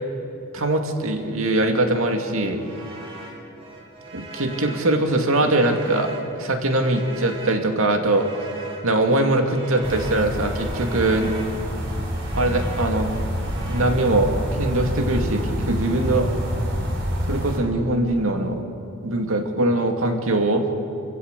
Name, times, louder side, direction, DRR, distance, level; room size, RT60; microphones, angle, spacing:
voice 1, 0.5-2.6 4.1-6.1 6.4-8.3 8.8-11.3 12.4-13.1 13.7-14.3 14.6-16.3 17.3-18.6 19.0-20.7, right 2 dB, 70° right, 4 dB, 2.3 m, -22 dB
sound 1, 2.5-13.8, right 2 dB, 25° right, 2.5 m, -40 dB
sound 2, 9.8-17.6, equal, 55° right, 4.1 m, -27 dB
27.5 x 16.0 x 8.2 m, 2.7 s
head